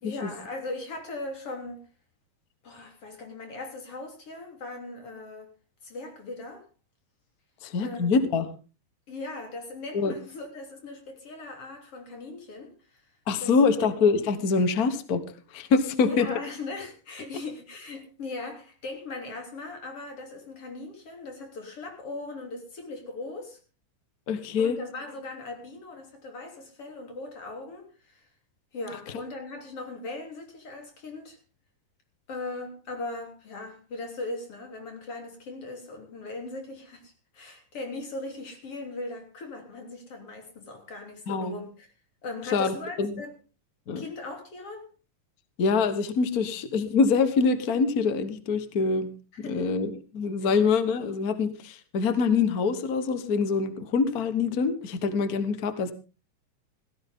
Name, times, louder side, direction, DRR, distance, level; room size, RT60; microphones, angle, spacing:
voice 1, 0.0-1.8 2.6-5.5 5.8-6.7 7.8-8.2 9.1-13.0 13.4-13.9 15.9-23.6 24.6-28.3 28.7-31.4 32.3-41.9 42.2-43.3 44.0-44.9 49.4-49.7 50.4-50.5, left 2 dB, 45° left, 4.1 m, -39 dB
voice 2, 7.6-8.5 9.9-10.1 13.3-15.2 15.5-16.3 24.3-24.8 41.3-41.6 42.5-43.2 43.9-44.0 45.6-49.1 49.4-55.9, left 5 dB, 80° left, 0.8 m, -25 dB
17.0 x 14.5 x 3.7 m
omnidirectional pair, 3.7 m